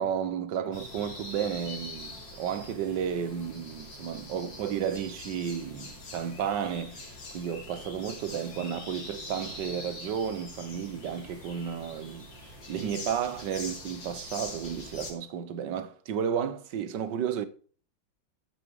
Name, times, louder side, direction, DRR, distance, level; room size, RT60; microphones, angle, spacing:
voice 1, 0.0-17.5, right 8 dB, 70° right, 1.5 m, -33 dB
sound 1, 0.7-15.1, left 2 dB, 70° left, 3.4 m, -43 dB
13.0 x 6.1 x 4.6 m
omnidirectional pair, 2.1 m